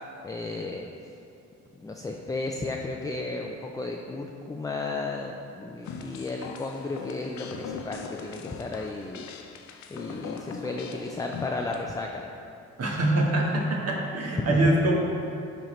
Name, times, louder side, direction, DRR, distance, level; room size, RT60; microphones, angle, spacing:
voice 1, 0.2-0.9 1.8-9.2 9.9-12.3 14.5-14.6, left 3 dB, 10° left, 1 dB, 0.4 m, -34 dB
sound 1, 5.8-11.8, left 6 dB, 65° left, 0.6 m, -40 dB
voice 2, 12.8-14.9, right 1 dB, 55° right, -2 dB, 1.3 m, -24 dB
10.5 x 4.4 x 3.1 m, 2.7 s
cardioid pair, 90°, 30 cm